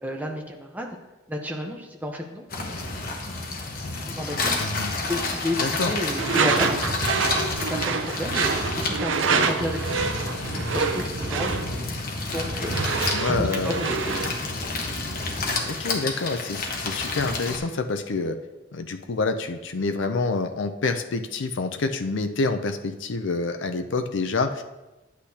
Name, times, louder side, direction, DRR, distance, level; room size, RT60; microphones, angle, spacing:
voice 1, 0.0-1.0 1.3-2.5 4.0-4.6 5.1-6.9 7.5-10.0 10.4-11.6 12.3-12.8 13.4-14.1, equal, 10° right, 1 dB, 0.9 m, -32 dB
sound 1, 2.5-17.6, left 3 dB, 45° left, 1.1 m, -30 dB
voice 2, 4.6-4.9 5.6-6.0 13.1-13.8 15.7-18.4 18.7-24.6, left 3 dB, 80° left, 7 dB, 0.5 m, -27 dB
Door / Screech, 6.1-14.4, right 4 dB, 85° right, 0.6 m, -26 dB
9.9 x 8.4 x 2.8 m, 1.1 s
head